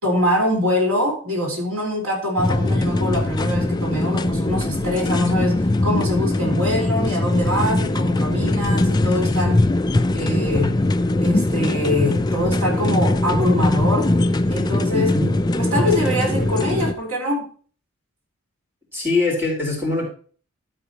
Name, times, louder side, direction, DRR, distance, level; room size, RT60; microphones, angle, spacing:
voice 1, 0.0-9.6 10.1-10.8 11.2-14.1 14.5-15.1 15.6-17.5, left 1 dB, 85° right, 1 dB, 4.0 m, -23 dB
sound 1, 2.4-16.9, left 2 dB, 20° left, 0.4 m, -21 dB
voice 2, 14.9-15.3 18.9-20.1, left 3 dB, 10° right, -1 dB, 4.1 m, -22 dB
12.5 x 8.0 x 2.8 m, 0.42 s
head